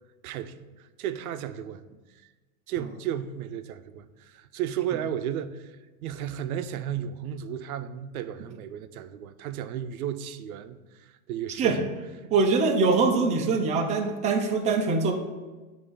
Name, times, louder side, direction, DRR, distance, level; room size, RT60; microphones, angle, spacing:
voice 1, 0.2-2.0 2.7-10.8 11.3-11.7, right 10 dB, 80° right, 0.6 m, -34 dB
voice 2, 12.3-15.1, right 4 dB, 15° right, 0.4 m, -23 dB
7.5 x 2.7 x 4.9 m
supercardioid pair, 135°, 43 cm